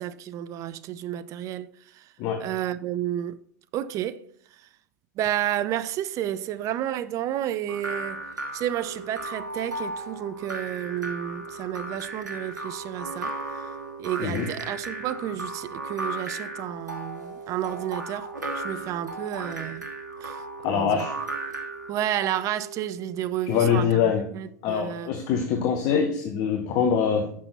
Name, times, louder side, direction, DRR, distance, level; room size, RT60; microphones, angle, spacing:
voice 1, 0.0-2.1 2.4-3.4 3.7-4.2 5.2-8.2 8.5-13.3 14.0-18.3 18.6-19.9 20.2-21.1 21.9-25.2, right 11 dB, 35° right, 0.4 m, -31 dB
sound 1, 7.7-21.9, right 2 dB, 90° right, 1.2 m, -36 dB
sound 2, 8.8-23.2, right 5 dB, 20° right, 1.9 m, -43 dB
voice 2, 20.6-21.2 23.5-24.3 24.6-27.3, left 7 dB, 45° left, 0.8 m, -24 dB
6.1 x 5.7 x 4.0 m
hypercardioid pair, 95°, 9 cm